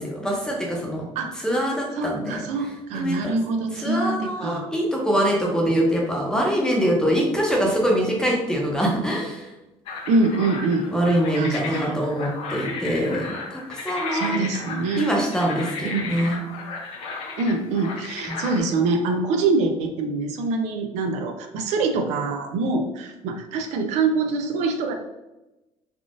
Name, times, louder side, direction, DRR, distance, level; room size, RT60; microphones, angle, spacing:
voice 1, 0.0-1.1 1.4-2.4 2.9-3.3 3.7-9.5 10.9-14.3 14.9-16.4 18.3-18.5, equal, 5° left, -1 dB, 0.7 m, -24 dB
voice 2, 1.9-4.7 10.1-10.9 11.4-12.0 14.1-15.1 15.8-16.2 17.4-24.9, right 3 dB, 85° right, 4 dB, 0.5 m, -24 dB
sound 1, 9.9-18.6, left 4 dB, 60° left, 0.6 m, -34 dB
3.5 x 2.4 x 2.5 m, 0.98 s
cardioid pair, 140°, 11 cm